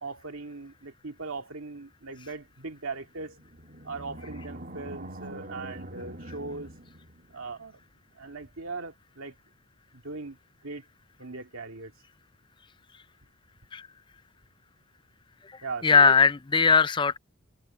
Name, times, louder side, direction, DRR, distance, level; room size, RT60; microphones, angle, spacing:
voice 1, 0.0-3.4 3.8-6.7 7.3-7.8 8.2-9.4 9.9-10.8 11.2-11.9 15.6-16.2, right 3 dB, 75° right, 2.1 m, -39 dB
Animal, 3.1-7.6, right 1 dB, 40° right, 3.5 m, -43 dB
voice 2, 15.8-17.2, left 5 dB, 20° left, 0.4 m, -20 dB
head